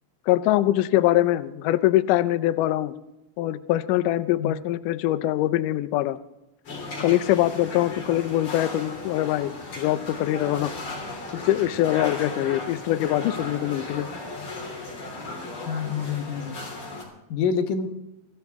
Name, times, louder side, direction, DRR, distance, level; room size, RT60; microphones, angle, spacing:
voice 1, 0.3-2.9 3.4-6.2 7.0-10.7 11.3-14.1, left 14 dB, 90° left, 13 dB, 1.8 m, -23 dB
sound 1, 6.6-17.0, left 2 dB, 35° left, 3.6 m, -36 dB
voice 2, 15.7-16.6 17.3-17.9, left 6 dB, 65° left, 5 dB, 2.5 m, -26 dB
24.0 x 14.0 x 3.6 m, 0.93 s
omnidirectional pair, 4.5 m